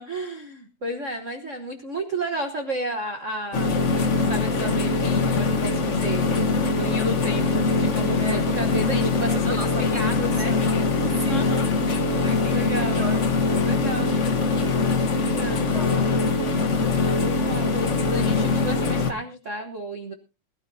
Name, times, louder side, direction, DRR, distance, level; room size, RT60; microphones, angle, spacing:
voice 1, 0.0-6.2 6.8-9.7 9.9-10.5 11.3-11.7 12.5-13.1 13.6-14.2 15.2-15.7 17.2-20.1, right 1 dB, 55° right, 4 dB, 0.8 m, -32 dB
sound 1, 3.5-19.1, left 3 dB, 85° left, 0.6 m, -22 dB
voice 2, 9.1-11.6 12.2-13.4 15.1-15.9, right 1 dB, 35° left, 4 dB, 1.2 m, -35 dB
21.0 x 12.5 x 2.8 m, 0.29 s
omnidirectional pair, 3.3 m